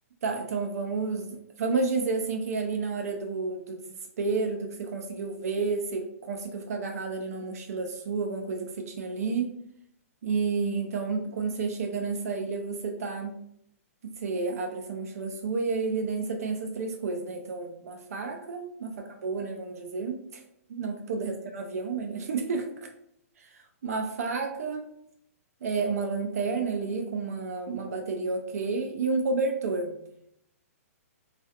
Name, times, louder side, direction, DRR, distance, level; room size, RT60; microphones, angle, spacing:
voice 1, 0.2-3.8 4.2-9.6 10.2-13.3 14.0-20.4 20.7-22.7 23.4-24.8 25.6-29.9, right 4 dB, 75° right, 3 dB, 0.4 m, -31 dB
2.3 x 2.2 x 2.7 m, 0.74 s
hypercardioid pair, 160°, 8 cm